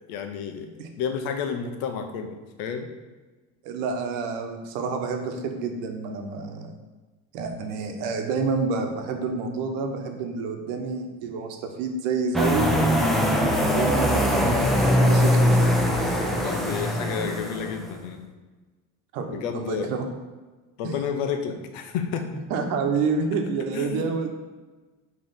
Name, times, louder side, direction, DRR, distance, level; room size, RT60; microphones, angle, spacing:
voice 1, 0.1-0.7 1.0-2.9 16.4-18.3 19.2-19.9 20.8-22.3 23.7-24.2, left 7 dB, 80° left, 6 dB, 0.9 m, -31 dB
voice 2, 3.6-6.8 7.3-13.3 13.8-15.7 19.1-20.0 22.5-24.3, right 4 dB, 80° right, 4 dB, 1.0 m, -28 dB
sound 1, 12.3-17.9, equal, ahead, 0.7 m, -21 dB
5.4 x 3.3 x 5.6 m, 1.3 s
supercardioid pair, 110°, 34 cm